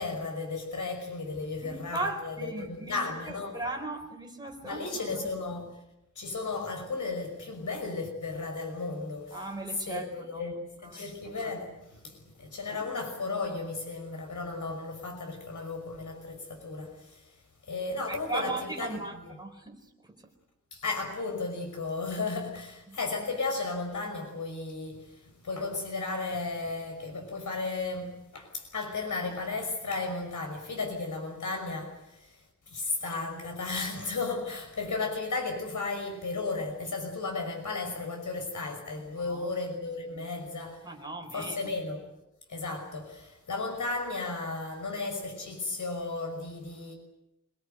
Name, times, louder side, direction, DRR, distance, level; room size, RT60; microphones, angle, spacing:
voice 1, 0.0-3.6 4.6-5.8 6.2-9.4 9.9-17.3 17.7-19.3 20.7-32.4 32.7-40.8 41.3-42.1 42.5-46.9, left 3 dB, 70° left, 5.8 m, -34 dB
voice 2, 1.6-3.0 3.3-5.3 9.3-10.4 10.8-11.1 12.7-12.8 18.1-20.2 22.9-23.0 39.1-39.5 40.1-40.3 40.8-41.7, right 2 dB, 15° right, 4.6 m, -38 dB
26.0 x 20.0 x 9.1 m
wide cardioid pair, 135°, 31 cm